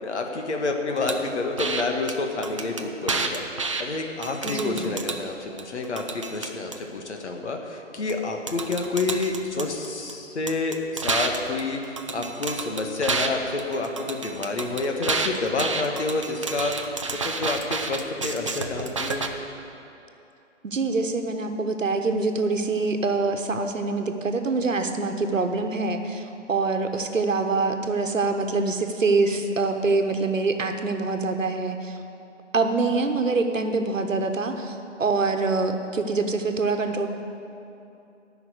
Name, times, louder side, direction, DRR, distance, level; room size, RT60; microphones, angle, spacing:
voice 1, 0.0-3.4 3.8-11.8 12.1-16.9 17.2-19.3, left 3 dB, 60° left, 3 dB, 1.7 m, -29 dB
sound 1, 1.1-1.2 1.6-1.8 2.1-2.2 2.4-3.8 4.2-5.2 5.6-6.8 8.1-8.2 8.5-10.1 10.5-13.3 13.6-19.3, right 4 dB, 25° right, 0.4 m, -29 dB
voice 2, 4.4-4.9 20.6-32.0 32.5-37.1, right 3 dB, 80° right, 6 dB, 1.3 m, -25 dB
14.0 x 6.0 x 8.1 m, 2.7 s
figure-of-eight pair, 145°, 38 cm